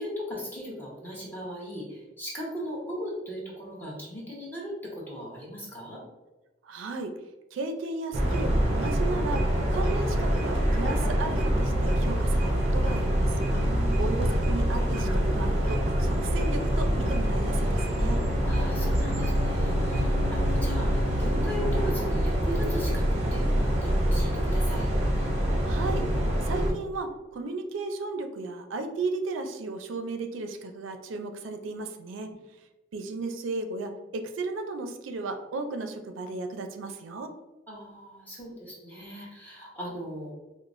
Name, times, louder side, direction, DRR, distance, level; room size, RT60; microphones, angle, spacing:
voice 1, 0.0-6.0 13.5-14.1 18.4-24.9 37.7-40.3, equal, 10° left, -5 dB, 0.8 m, -38 dB
voice 2, 6.6-7.1 7.5-9.4 9.7-13.4 14.0-18.2 25.6-26.1 26.4-32.3 32.9-37.3, right 3 dB, 90° right, 6 dB, 0.4 m, -34 dB
sound 1, 8.1-26.7, equal, 35° right, 0.6 m, -25 dB
Bowed string instrument, 18.1-22.3, left 2 dB, 70° left, 0.4 m, -37 dB
4.8 x 2.0 x 2.5 m, 1.1 s
head